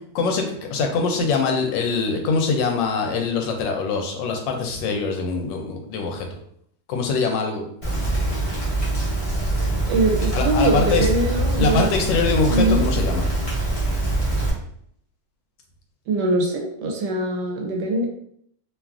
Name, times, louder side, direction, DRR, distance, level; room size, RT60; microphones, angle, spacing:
voice 1, 0.1-6.3 6.9-8.1 10.3-11.1 11.6-13.2, left 4 dB, 80° left, 3 dB, 1.2 m, -23 dB
Rain, 7.8-14.5, right 2 dB, 35° left, 0.5 m, -23 dB
voice 2, 9.9-11.9 12.5-12.8 16.1-18.1, right 2 dB, 75° right, 1 dB, 1.1 m, -22 dB
3.0 x 2.3 x 2.3 m, 0.67 s
omnidirectional pair, 2.0 m